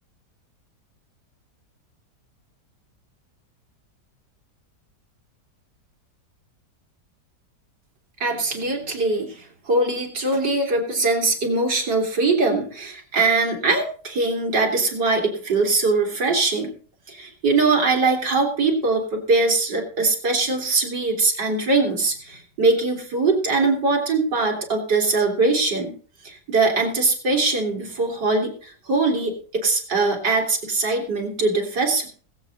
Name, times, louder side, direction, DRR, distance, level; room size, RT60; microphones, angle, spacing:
voice 1, 8.2-16.7 17.1-26.0 26.2-32.1, right 3 dB, 85° right, 0 dB, 3.6 m, -22 dB
21.0 x 7.7 x 4.1 m, 0.42 s
omnidirectional pair, 1.8 m